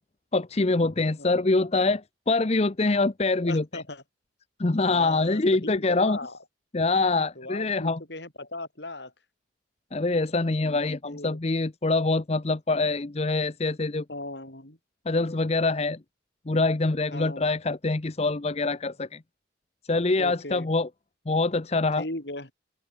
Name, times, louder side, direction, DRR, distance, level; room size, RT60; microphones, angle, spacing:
voice 1, 0.3-3.8 4.6-6.2 6.7-8.0 9.9-14.0 15.1-16.0 16.5-19.2 19.8-20.9 21.3-22.0, left 3 dB, 35° left, 0.7 m, -25 dB
voice 2, 3.4-4.0 4.9-6.4 7.4-9.1 11.0-11.4 14.1-14.8 17.1-17.5 20.2-20.7 22.0-22.5, left 2 dB, 60° left, 5.5 m, -38 dB
open air
head